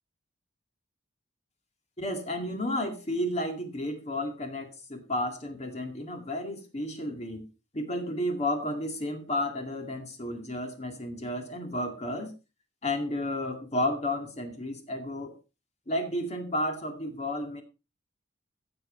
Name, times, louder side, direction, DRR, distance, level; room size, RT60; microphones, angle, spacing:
voice 1, 2.0-7.4 7.7-12.3 12.8-15.4 15.9-17.6, left 1 dB, 35° left, 4 dB, 2.2 m, -32 dB
15.5 x 7.7 x 4.4 m, 0.29 s
head